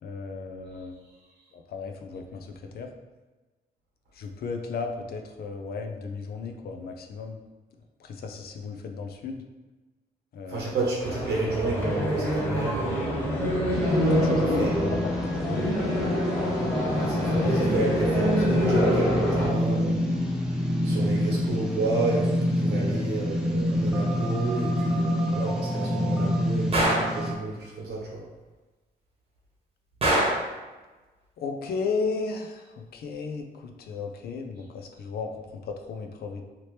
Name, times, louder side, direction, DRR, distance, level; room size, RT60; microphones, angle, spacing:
voice 1, 0.0-1.0 1.5-2.9 4.2-7.4 8.0-9.4 10.3-10.7 14.1-15.8 31.4-36.4, left 4 dB, 70° left, 4 dB, 0.4 m, -34 dB
voice 2, 10.5-13.2 14.4-15.0 17.0-20.1 20.4-28.2, right 3 dB, 80° right, -3 dB, 1.1 m, -31 dB
sound 1, 11.0-19.5, equal, 10° left, 1.4 m, -26 dB
sound 2, 13.7-27.3, left 1 dB, 5° right, 0.5 m, -27 dB
Gunshot gunfire, 26.7-27.1 30.0-30.5, right 1 dB, 35° right, 1.0 m, -23 dB
2.9 x 2.8 x 3.2 m, 1.2 s
cardioid pair, 110°, 17 cm